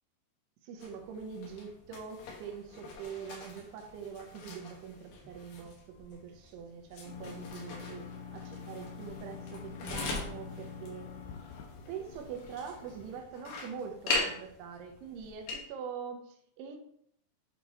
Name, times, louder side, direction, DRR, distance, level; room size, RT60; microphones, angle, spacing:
voice 1, 0.6-8.1 8.3-11.1 11.9-16.8, right 6 dB, 80° right, 3 dB, 2.8 m, -44 dB
sound 1, 0.8-15.7, left 3 dB, 65° left, 2.6 m, -42 dB
sound 2, 7.0-13.2, left 5 dB, 85° left, 1.9 m, -46 dB
8.5 x 3.0 x 4.1 m, 0.69 s
omnidirectional pair, 4.9 m